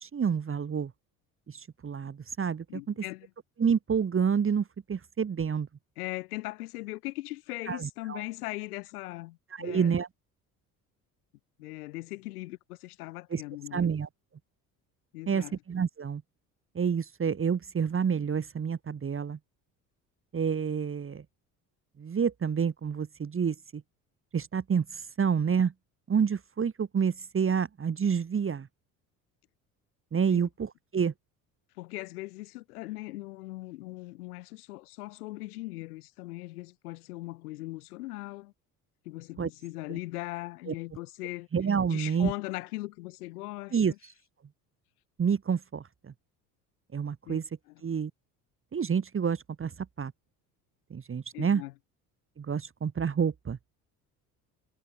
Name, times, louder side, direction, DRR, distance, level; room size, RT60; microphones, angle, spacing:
voice 1, 0.0-0.9 1.5-2.6 3.6-5.7 7.7-8.2 9.5-10.1 13.3-13.4 13.7-14.1 15.3-16.2 16.7-19.4 20.3-21.2 22.0-23.8 24.3-25.7 26.1-28.7 30.1-31.1 39.4-39.5 40.7-40.8 41.5-42.3 43.7-43.9 45.2-46.1 46.9-47.4 47.8-48.1 48.7-49.7 50.0-50.1 50.9-51.6 52.4-53.6, right 6 dB, 30° right, 1.5 m, -28 dB
voice 2, 2.7-3.3 6.0-10.0 11.6-13.9 15.1-15.6 30.3-30.4 31.8-38.5 39.0-41.5 41.9-44.0 47.3-47.4 47.7-47.8 51.3-51.7, left 20 dB, 85° left, 5.4 m, -39 dB
hypercardioid pair, 65°, 44 cm